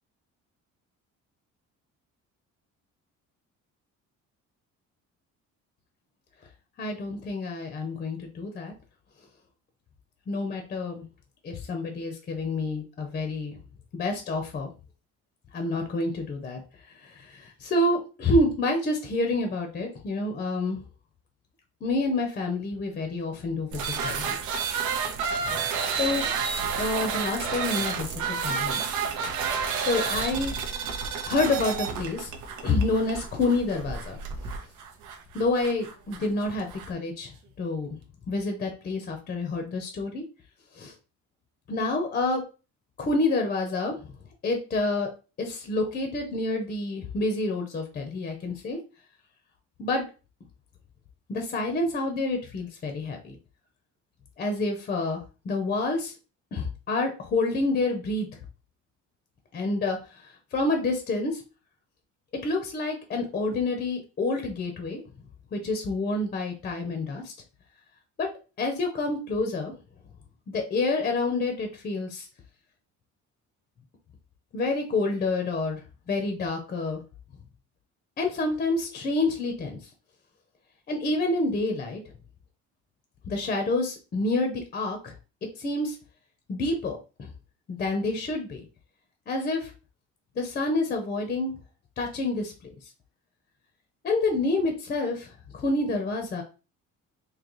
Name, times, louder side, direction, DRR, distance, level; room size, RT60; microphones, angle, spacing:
voice 1, 6.8-8.7 10.3-11.0 11.4-13.5 13.9-14.7 15.5-16.6 17.0-20.8 21.8-24.4 25.4-25.6 26.0-26.3 26.8-28.8 29.8-30.5 31.2-32.3 32.6-34.2 35.3-37.3 37.6-38.0 38.3-40.2 40.7-40.9 41.7-42.4 43.0-44.0 44.4-45.1 45.4-48.8 49.8-50.0 51.3-53.4 54.4-56.1 56.5-58.3 59.5-60.0 60.5-61.4 62.4-65.0 65.5-67.3 68.2-68.3 68.6-69.7 70.5-72.3 74.5-75.8 76.1-77.0 78.2-79.8 80.9-82.0 83.3-85.1 85.6-86.0 86.5-87.3 87.7-88.6 89.3-89.7 90.3-91.5 92.0-92.5 94.0-96.4, left 2 dB, 30° left, 4 dB, 0.6 m, -28 dB
sound 1, 23.7-36.9, right 6 dB, 85° right, 0.8 m, -30 dB
3.9 x 2.8 x 3.0 m, 0.33 s
cardioid pair, 175°, 30 cm